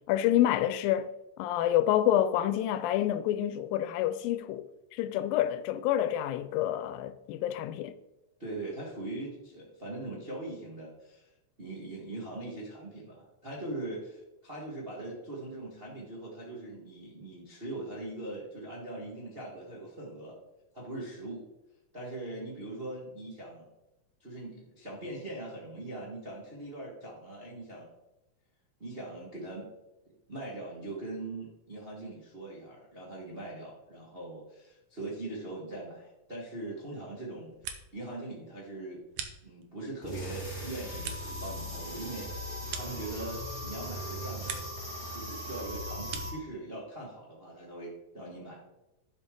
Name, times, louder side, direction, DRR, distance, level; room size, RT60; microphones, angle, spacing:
voice 1, 0.1-1.1 1.4-4.6 4.9-7.9, left 12 dB, 85° left, 2.3 m, -28 dB
voice 2, 8.4-11.3 11.6-20.3 20.7-21.4 21.9-23.6 24.2-27.9 28.8-29.7 30.3-37.5 37.9-39.0 39.4-44.6 45.1-48.7, right 2 dB, 45° right, 0.7 m, -41 dB
sound 1, 37.3-38.1 38.4-39.9 40.3-43.6 43.9-44.9 45.2-46.5, right 8 dB, 70° right, 2.0 m, -44 dB
sound 2, 40.0-46.3, equal, 15° left, 2.5 m, -39 dB
11.0 x 5.3 x 3.7 m
omnidirectional pair, 4.0 m